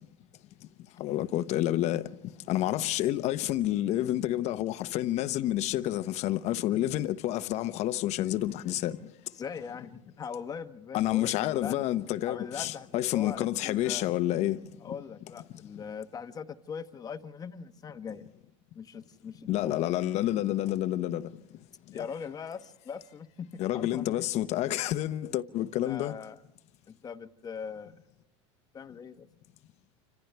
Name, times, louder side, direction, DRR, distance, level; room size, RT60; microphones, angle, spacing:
voice 1, 1.0-2.0 2.5-9.0 10.9-14.6 19.5-21.3 21.9-22.0 23.6-26.2, left 14 dB, 45° left, 1.0 m, -29 dB
voice 2, 9.4-11.8 12.2-14.1 14.8-18.3 18.7-19.9 21.9-24.3 25.8-26.4 26.9-28.0 28.7-29.3, left 6 dB, 25° left, 1.1 m, -41 dB
29.5 x 26.0 x 3.4 m
supercardioid pair, 120°, 15 cm